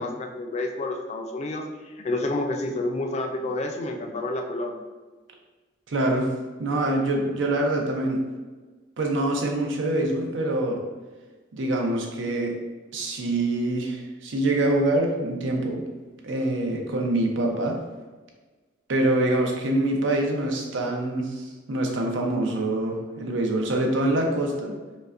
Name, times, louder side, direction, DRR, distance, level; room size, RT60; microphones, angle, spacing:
voice 1, 0.0-4.8, left 2 dB, 35° left, 3 dB, 0.4 m, -29 dB
voice 2, 5.9-6.3 6.6-8.2 9.0-10.8 11.5-12.5 12.9-15.8 16.2-17.8 18.9-24.7, right 1 dB, 85° right, 1 dB, 0.6 m, -25 dB
5.0 x 2.1 x 2.4 m, 1.3 s
head